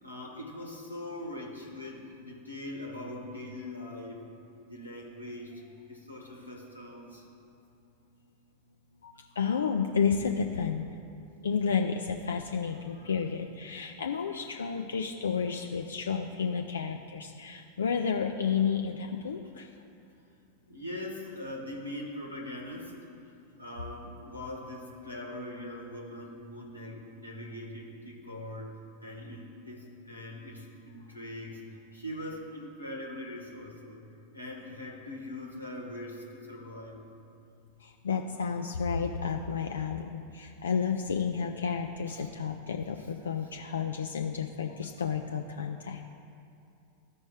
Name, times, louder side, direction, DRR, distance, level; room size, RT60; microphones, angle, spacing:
voice 1, 0.0-4.2 4.7-7.3 12.9-13.1 18.5-18.7 20.7-22.9 23.6-34.0 34.3-37.0 42.1-42.3 43.0-43.1, left 1 dB, 90° left, -1 dB, 1.2 m, -42 dB
voice 2, 9.0-10.9 11.4-19.7 37.8-46.0, left 6 dB, 70° left, 4 dB, 0.4 m, -31 dB
14.0 x 5.3 x 3.2 m, 2.6 s
figure-of-eight pair, 90°, 0 cm